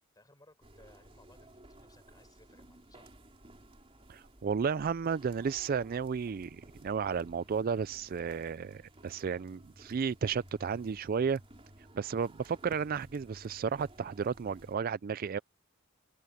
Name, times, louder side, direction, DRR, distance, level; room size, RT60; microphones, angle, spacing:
voice 1, 0.1-3.1, left 2 dB, 20° left, 4.4 m, -62 dB
sound 1, 0.6-14.8, right 1 dB, 25° right, 3.8 m, -56 dB
voice 2, 4.1-11.4 11.9-15.4, right 6 dB, 40° right, 0.3 m, -33 dB
head